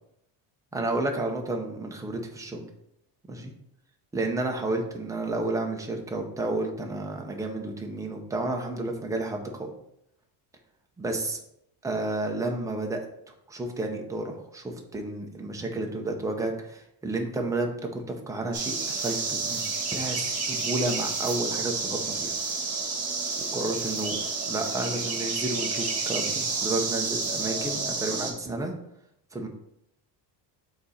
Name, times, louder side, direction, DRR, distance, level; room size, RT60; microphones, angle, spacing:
voice 1, 0.7-2.7 3.3-3.5 4.1-9.7 11.0-11.4 11.8-13.0 13.5-19.6 19.9-22.3 23.4-24.2 24.5-28.7 29.3-29.5, right 2 dB, 5° right, 1 dB, 0.6 m, -31 dB
sound 1, 18.5-28.3, right 4 dB, 30° right, 1.7 m, -30 dB
5.1 x 4.1 x 5.0 m, 0.77 s
cardioid pair, 160°, 46 cm